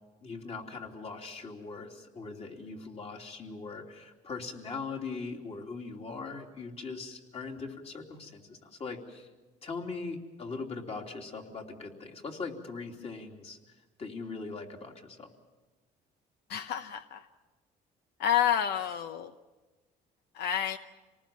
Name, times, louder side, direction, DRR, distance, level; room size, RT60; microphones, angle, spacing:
voice 1, 0.2-9.3 9.6-15.3, left 4 dB, 35° left, 2 dB, 3.1 m, -40 dB
voice 2, 16.5-17.3 18.2-19.3 20.3-20.8, left 10 dB, 75° left, 9 dB, 0.9 m, -29 dB
26.5 x 19.0 x 7.3 m, 1.2 s
cardioid pair, 110°, 17 cm